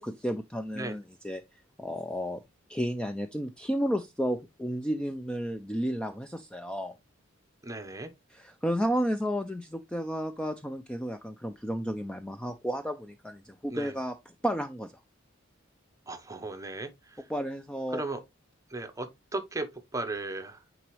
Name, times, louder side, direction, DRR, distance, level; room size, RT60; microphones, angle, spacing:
voice 1, 0.0-1.4 1.8-2.4 2.7-6.9 8.3-14.2 14.4-14.9 17.3-18.0, equal, 5° left, 0.4 m, -32 dB
voice 2, 7.6-8.1 13.7-14.0 16.1-17.3 17.9-18.2 18.7-20.6, right 2 dB, 15° right, 0.8 m, -36 dB
9.1 x 3.9 x 3.1 m
head